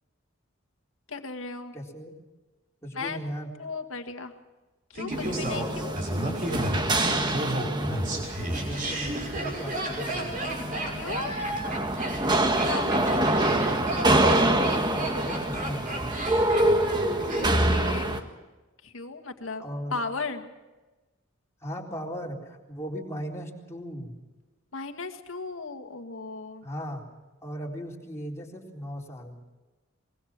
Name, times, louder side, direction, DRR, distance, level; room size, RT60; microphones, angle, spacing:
voice 1, 1.1-1.7 2.9-3.2 3.6-4.3 4.9-6.0 11.0-11.3 12.7-13.2 17.4-18.3 18.8-19.6 19.9-20.5 24.7-26.6, left 4 dB, 85° left, 7 dB, 2.0 m, -36 dB
voice 2, 1.7-2.2 2.8-3.5 7.0-8.2 8.5-10.3 12.9-13.5 14.4-16.1 19.6-20.0 21.6-24.1 26.6-27.1 27.4-29.4, equal, 15° left, -2 dB, 4.0 m, -37 dB
Laughter, 4.9-18.0 18.2-18.3, right 1 dB, 45° right, 6.1 m, -32 dB
sound 1, 5.1-18.2, right 1 dB, 20° right, 1.5 m, -26 dB
24.5 x 21.5 x 6.1 m, 1.2 s
head